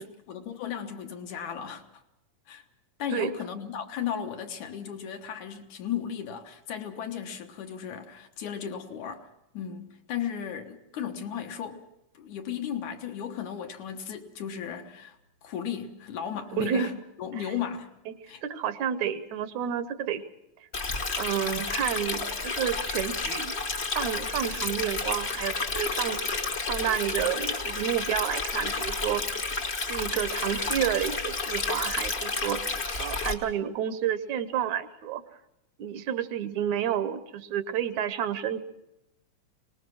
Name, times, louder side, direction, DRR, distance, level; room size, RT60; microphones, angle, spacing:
voice 1, 0.0-1.8 2.5-2.6 3.0-9.3 9.5-11.8 12.1-15.2 15.4-17.9 18.3-18.4, left 8 dB, 80° left, 2.8 m, -35 dB
voice 2, 16.6-17.0 17.4-17.5 18.1-18.2 18.4-20.2 21.2-23.5 24.0-29.2 29.9-35.2 35.8-38.6, right 9 dB, 75° right, 2.2 m, -30 dB
Stream, 20.7-33.3, left 3 dB, 45° left, 0.8 m, -31 dB
24.0 x 19.5 x 6.2 m
omnidirectional pair, 3.4 m